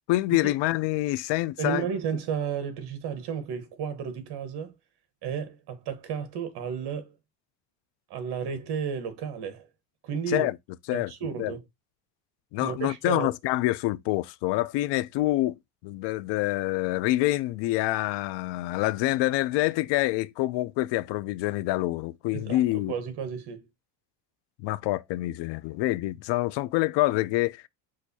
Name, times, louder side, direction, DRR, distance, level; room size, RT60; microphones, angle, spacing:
voice 1, 0.1-1.9 10.3-10.5 10.9-11.1 11.4-11.5 12.5-15.6 15.8-22.9 24.6-27.6, left 17 dB, 60° left, 0.5 m, -26 dB
voice 2, 1.6-4.7 5.2-7.1 8.1-9.7 10.0-10.5 10.9-11.6 12.6-13.3 22.3-23.7, right 7 dB, 55° right, 1.3 m, -33 dB
6.3 x 2.6 x 2.7 m
cardioid pair, 120°, 48 cm